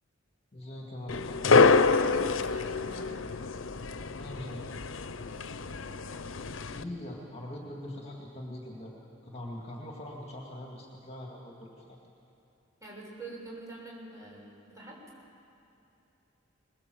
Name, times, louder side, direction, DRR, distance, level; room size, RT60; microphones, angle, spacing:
voice 1, 0.5-1.6 4.2-4.8 6.6-8.9 9.2-12.0, left 1 dB, 30° left, -1 dB, 2.3 m, -42 dB
sound 1, 1.1-6.8, left 4 dB, 75° left, 0.7 m, -27 dB
voice 2, 2.0-3.4 12.8-15.0, right 2 dB, 15° right, -3 dB, 6.3 m, -46 dB
21.5 x 21.0 x 7.9 m, 2.9 s
head